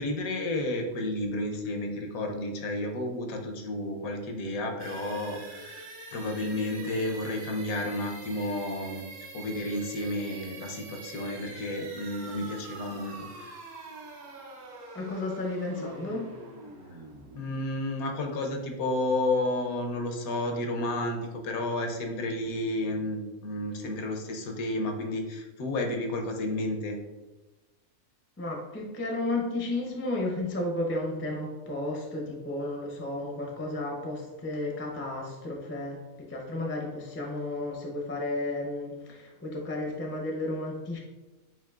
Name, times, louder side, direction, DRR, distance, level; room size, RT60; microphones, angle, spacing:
voice 1, 0.0-9.0 9.3-13.5 17.3-27.0, left 1 dB, 80° left, 3 dB, 1.1 m, -31 dB
sound 1, 4.8-18.5, right 3 dB, 75° right, 1.2 m, -45 dB
voice 2, 14.9-16.3 28.4-41.0, left 2 dB, 20° left, -1 dB, 0.3 m, -33 dB
7.4 x 2.7 x 2.3 m, 1.1 s
omnidirectional pair, 1.5 m